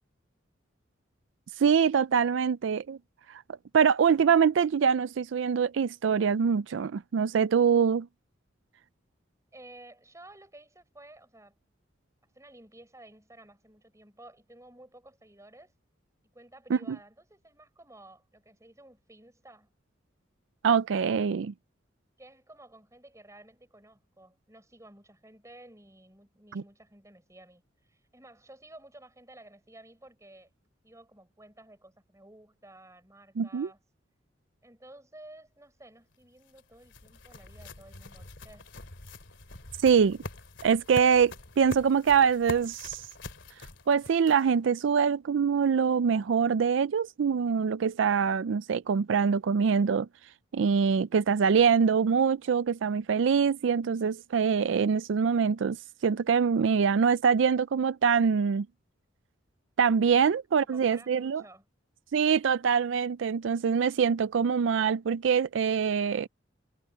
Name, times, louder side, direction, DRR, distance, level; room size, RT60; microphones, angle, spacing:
voice 1, 1.6-3.0 3.3-3.4 3.7-8.1 16.7-16.8 20.6-21.5 26.5-26.6 33.4-33.7 39.8-40.2 40.6-43.0 43.9-50.1 50.5-55.8 56.0-58.7 59.8-61.4 62.1-66.3, right 6 dB, 75° right, 0.4 m, -24 dB
voice 2, 9.5-11.6 12.3-15.7 16.3-19.7 22.2-30.5 30.8-33.8 34.6-38.7 60.2-60.3 60.6-61.7, right 1 dB, 15° right, 6.4 m, -53 dB
sound 1, 36.1-44.7, left 2 dB, 75° left, 2.6 m, -44 dB
head